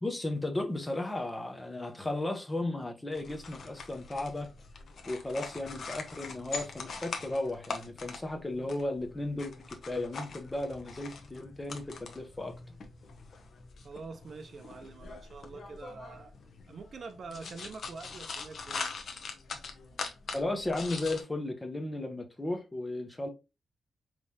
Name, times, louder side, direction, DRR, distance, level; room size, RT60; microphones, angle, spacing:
voice 1, 0.0-4.5 5.1-12.5 20.3-23.3, left 2 dB, 15° left, 0.8 m, -35 dB
sound 1, 3.1-21.2, left 4 dB, 55° left, 0.9 m, -43 dB
voice 2, 13.8-16.3 16.7-18.9, right 4 dB, 45° right, 0.6 m, -45 dB
5.3 x 3.2 x 2.7 m
wide cardioid pair, 155°, 0 cm